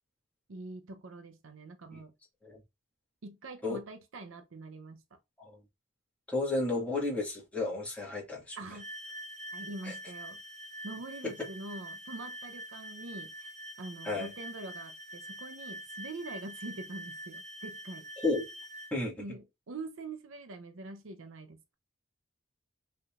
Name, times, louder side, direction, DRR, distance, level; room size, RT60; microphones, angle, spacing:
voice 1, 0.5-2.1 3.2-5.0 8.6-8.9 9.5-10.4 10.8-13.5 13.8-18.1 19.2-21.7, right 2 dB, 70° right, 0.6 m, -44 dB
voice 2, 6.3-8.6 9.8-9.9 11.4-11.5 14.0-14.3 18.2-18.5 18.9-19.2, left 2 dB, 5° left, 1.9 m, -32 dB
sound 1, 8.8-18.9, right 1 dB, 35° right, 0.7 m, -45 dB
5.5 x 3.6 x 2.4 m
head